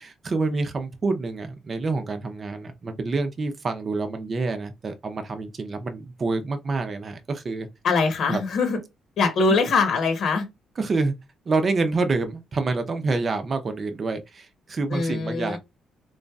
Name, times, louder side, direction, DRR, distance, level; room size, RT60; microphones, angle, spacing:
voice 1, 0.0-7.7 8.3-8.4 10.8-11.1 11.5-15.6, right 3 dB, 40° right, 0.7 m, -27 dB
voice 2, 7.8-8.8 9.2-10.4 14.9-15.6, left 4 dB, 70° left, 1.0 m, -22 dB
3.9 x 3.0 x 2.3 m
cardioid pair, 90°, 0 cm